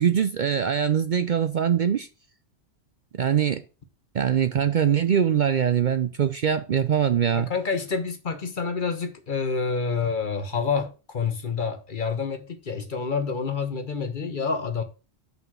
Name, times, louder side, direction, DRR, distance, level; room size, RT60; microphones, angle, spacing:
voice 1, 0.0-2.1 3.1-3.6 4.1-7.5, right 8 dB, 55° right, 0.6 m, -22 dB
voice 2, 7.3-14.8, left 5 dB, 45° left, 1.1 m, -28 dB
5.8 x 5.5 x 5.9 m
omnidirectional pair, 1.2 m